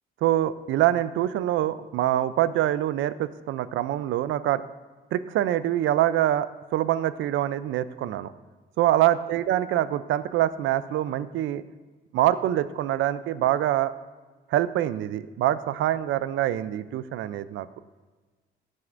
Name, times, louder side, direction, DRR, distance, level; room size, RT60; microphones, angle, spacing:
voice 1, 0.2-4.6 5.1-8.3 8.8-11.6 12.1-13.9 14.5-17.7, right 13 dB, 80° right, 15 dB, 0.5 m, -25 dB
14.5 x 7.7 x 2.6 m, 1.3 s
cardioid pair, 90°, 20 cm